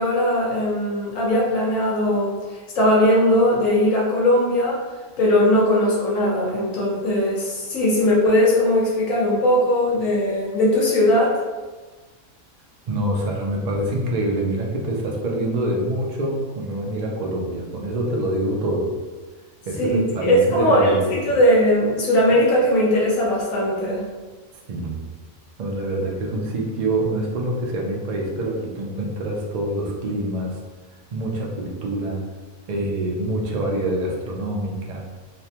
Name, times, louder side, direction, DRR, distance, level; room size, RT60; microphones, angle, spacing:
voice 1, 0.0-2.4 2.7-4.8 5.2-11.4 19.8-24.0, left 1 dB, 75° left, -5 dB, 1.2 m, -19 dB
voice 2, 12.9-18.9 19.7-21.2 24.7-25.1 25.6-30.6 31.1-32.2 32.7-35.0, right 1 dB, 75° right, -1 dB, 0.3 m, -25 dB
3.1 x 2.1 x 2.8 m, 1.3 s
omnidirectional pair, 1.4 m